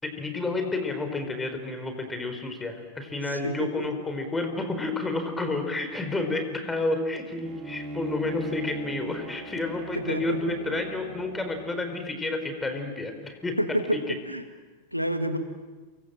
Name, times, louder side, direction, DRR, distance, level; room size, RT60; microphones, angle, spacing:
voice 1, 0.0-13.6 13.9-14.2, left 2 dB, 10° left, 6 dB, 4.5 m, -30 dB
voice 2, 3.3-3.9 9.9-10.6 13.6-14.4 14.9-15.4, equal, 90° left, 8 dB, 1.9 m, -29 dB
Bowed string instrument, 7.4-12.1, right 1 dB, 30° right, 3.7 m, -39 dB
28.0 x 23.5 x 7.7 m, 1.3 s
figure-of-eight pair, 90°, 0 cm